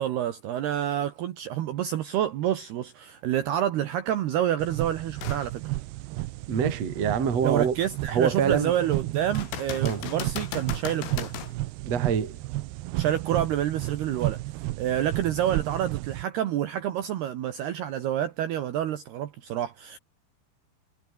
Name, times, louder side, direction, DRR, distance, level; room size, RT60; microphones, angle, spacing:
voice 1, 0.0-5.6 7.4-11.3 13.0-14.4 14.8-20.0, right 11 dB, 65° right, 3.0 m, -28 dB
sound 1, 4.6-16.2, right 18 dB, 85° right, 2.3 m, -33 dB
sound 2, 5.2-5.5 6.1-6.2 9.3-11.6 15.2-15.3, left 11 dB, 80° left, 4.8 m, -37 dB
voice 2, 6.5-7.8 8.1-8.7 9.8-10.0 11.8-12.4, right 7 dB, 35° right, 3.7 m, -25 dB
omnidirectional pair, 5.7 m